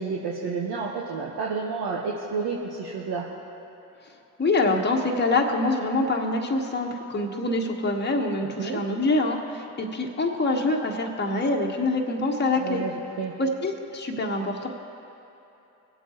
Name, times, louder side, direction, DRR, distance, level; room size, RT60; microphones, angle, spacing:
voice 1, 0.0-3.2 8.4-8.8 12.5-13.3, right 4 dB, 60° right, -3 dB, 1.3 m, -30 dB
voice 2, 4.4-12.8 13.4-14.7, left 2 dB, 25° left, 0 dB, 1.3 m, -25 dB
23.5 x 8.1 x 3.0 m, 2.9 s
hypercardioid pair, 45°, 43 cm